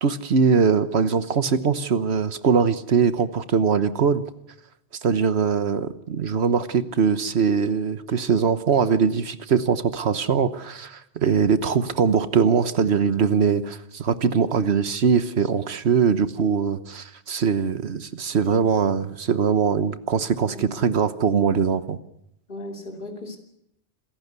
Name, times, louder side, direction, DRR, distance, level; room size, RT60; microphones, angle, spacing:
voice 1, 0.0-4.2 5.0-22.0, right 6 dB, 65° right, 12 dB, 1.3 m, -22 dB
voice 2, 20.5-20.8 22.5-23.4, left 1 dB, 50° left, 2 dB, 3.1 m, -37 dB
27.5 x 14.5 x 8.1 m, 0.79 s
omnidirectional pair, 1.2 m